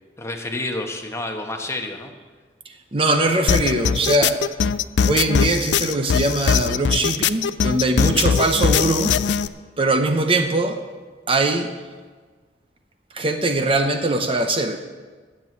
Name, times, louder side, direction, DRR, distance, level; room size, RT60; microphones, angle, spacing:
voice 1, 0.2-2.1 8.0-8.4, left 2 dB, 15° left, 3 dB, 1.1 m, -30 dB
voice 2, 2.7-4.4 5.1-9.1 9.8-10.8 11.3-11.7 13.1-14.8, right 2 dB, 30° right, 6 dB, 0.7 m, -21 dB
sound 1, 3.5-9.5, left 6 dB, 80° left, 0.4 m, -20 dB
10.0 x 7.6 x 8.1 m, 1.4 s
head